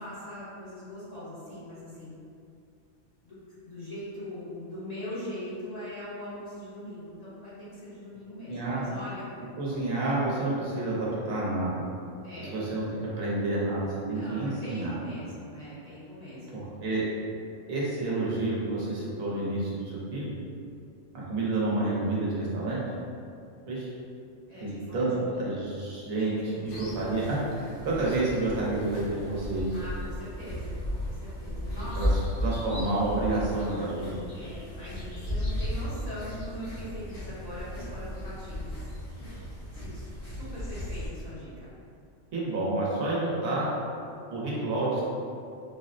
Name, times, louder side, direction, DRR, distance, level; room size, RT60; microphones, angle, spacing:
voice 1, 0.0-2.1 3.2-3.4 3.6-9.3 12.2-12.5 14.1-16.7 24.5-25.5 26.2-26.8 29.7-32.2 34.3-38.7 39.7-41.7, equal, 35° left, -11 dB, 0.9 m, -41 dB
voice 2, 8.5-8.8 9.6-11.8 12.4-12.8 13.2-15.0 16.5-17.1 17.7-20.3 21.1-22.8 23.7-23.9 24.6-25.1 25.4-29.8 32.0-32.1 32.4-34.1 42.3-43.7 44.3-45.0, right 2 dB, 85° right, -6 dB, 1.2 m, -29 dB
sound 1, 26.6-41.1, left 1 dB, 65° left, 1.4 m, -35 dB
4.5 x 2.1 x 2.5 m, 2.4 s
omnidirectional pair, 1.4 m